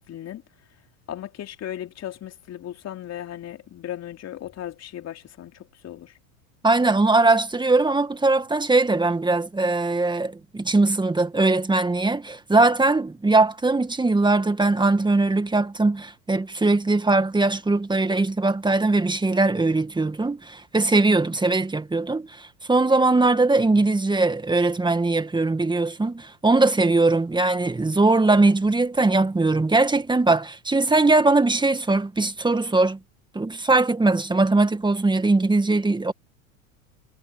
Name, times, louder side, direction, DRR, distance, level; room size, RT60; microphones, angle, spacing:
voice 1, 0.1-0.4 1.1-6.1, left 11 dB, 40° left, 3.6 m, -36 dB
voice 2, 6.6-33.0 33.3-36.1, right 3 dB, 10° right, 2.1 m, -20 dB
hypercardioid pair, 85°, 41 cm